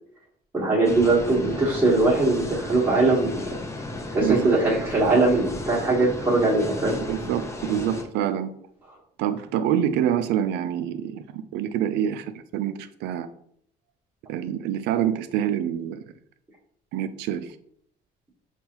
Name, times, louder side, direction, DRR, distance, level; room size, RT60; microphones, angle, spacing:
voice 1, 0.5-3.4 4.1-7.0, right 2 dB, 10° right, -6 dB, 1.2 m, -21 dB
sound 1, 0.9-8.0, left 2 dB, 15° left, 0.6 m, -35 dB
voice 2, 7.0-8.5 9.2-13.3 14.3-16.0 16.9-17.5, right 10 dB, 85° right, 12 dB, 0.4 m, -26 dB
5.4 x 2.4 x 2.9 m, 0.67 s
cardioid pair, 110°, 17 cm